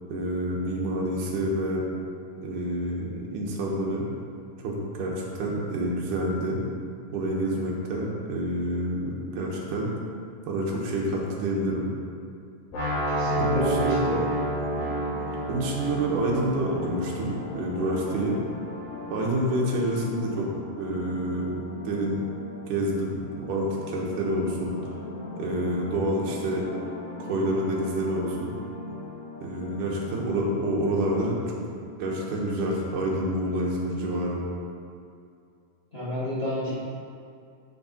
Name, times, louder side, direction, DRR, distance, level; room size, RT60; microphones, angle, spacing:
voice 1, 0.1-1.8 2.4-4.1 4.6-6.6 7.1-9.9 10.4-11.9 13.4-14.1 15.5-18.4 19.1-20.5 20.8-21.6 21.8-22.2 22.7-24.8 25.4-26.7 27.2-28.5 29.4-31.6 32.0-34.4, right 1 dB, 70° right, -3 dB, 2.7 m, -28 dB
sound 1, 12.7-18.6, right 1 dB, 90° left, 4.0 m, -30 dB
voice 2, 13.1-14.3 35.9-36.7, equal, 40° left, -10 dB, 0.8 m, -30 dB
sound 2, 14.2-31.6, left 2 dB, 60° left, 2.6 m, -39 dB
7.3 x 6.4 x 4.3 m, 2.4 s
omnidirectional pair, 3.9 m